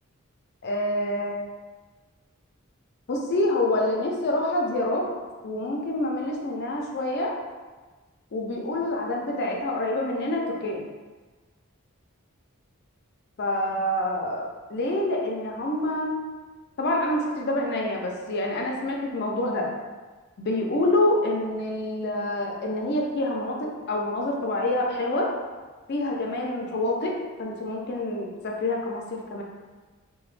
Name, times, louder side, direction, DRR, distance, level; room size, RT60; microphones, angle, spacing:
voice 1, 0.6-1.4 3.1-5.0 5.4-7.3 8.3-10.9 13.4-16.2 16.8-19.7 20.4-25.3 25.9-27.1 27.4-29.4, left 1 dB, 50° left, 0 dB, 0.4 m, -27 dB
2.9 x 2.2 x 3.2 m, 1.3 s
head